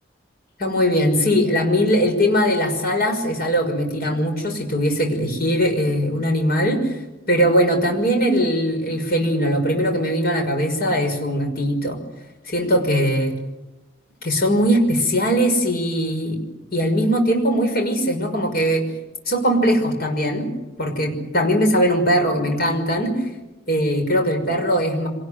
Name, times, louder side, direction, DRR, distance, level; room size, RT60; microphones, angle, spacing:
voice 1, 0.6-7.0 7.3-12.0 12.5-13.4 14.2-16.4 16.7-18.8 19.3-20.5 20.8-23.3 23.7-25.1, equal, 50° left, 4 dB, 5.9 m, -20 dB
26.0 x 19.5 x 9.8 m, 1.0 s
head